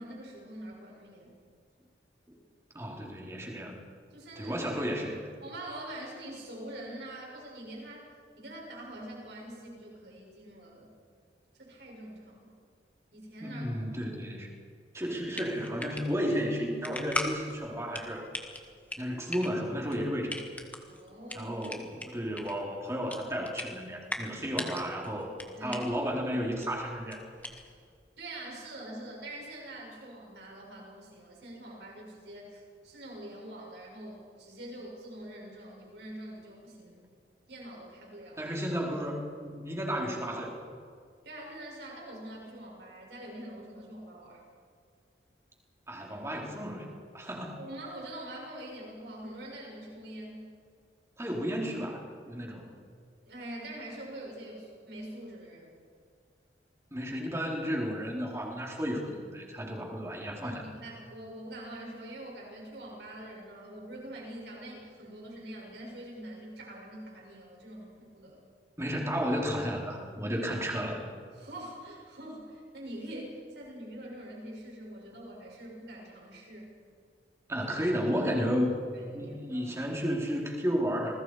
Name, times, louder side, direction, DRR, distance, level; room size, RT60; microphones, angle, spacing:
voice 1, 0.0-1.4 4.1-4.7 5.4-8.0 8.4-10.9 11.6-12.6 13.1-13.6 20.9-21.6 25.6-25.9 28.2-37.1 37.5-38.4 41.2-44.4 47.6-50.5 53.2-55.7 60.4-68.4 71.4-76.7 78.9-79.8, right 1 dB, 75° right, -2 dB, 7.2 m, -44 dB
voice 2, 2.7-3.8 4.4-5.3 13.4-14.5 14.9-18.2 19.0-20.4 21.3-25.3 25.6-27.2 38.4-40.6 45.9-47.6 51.2-52.7 56.9-60.6 68.8-71.0 77.5-78.7 79.1-81.1, equal, 15° right, -1 dB, 3.8 m, -33 dB
sound 1, 15.0-28.0, left 1 dB, 10° left, 1.7 m, -41 dB
27.5 x 20.5 x 4.9 m, 2.2 s
head